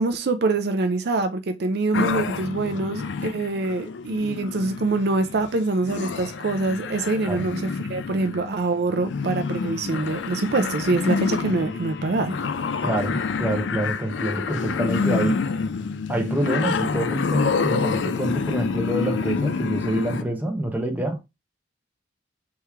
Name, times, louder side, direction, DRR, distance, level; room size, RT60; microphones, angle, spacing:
voice 1, 0.0-12.4, right 3 dB, 55° right, 0.5 m, -25 dB
sound 1, 1.9-20.2, left 5 dB, 65° left, 0.4 m, -28 dB
voice 2, 12.8-15.4 16.1-21.3, right 1 dB, 10° right, 0.8 m, -26 dB
3.6 x 3.1 x 4.4 m
head